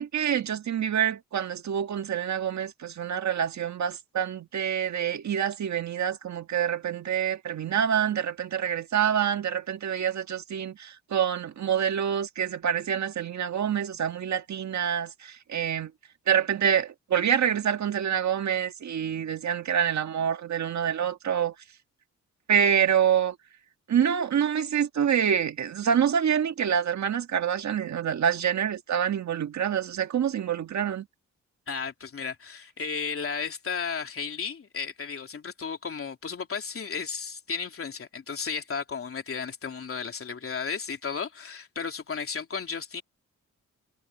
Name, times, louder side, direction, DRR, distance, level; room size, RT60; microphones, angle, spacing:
voice 1, 0.0-15.9 16.3-21.5 22.5-23.3 23.9-31.1, right 8 dB, 65° right, 1.7 m, -26 dB
voice 2, 31.7-43.0, left 5 dB, 45° left, 3.3 m, -34 dB
cardioid pair, 100°, 30 cm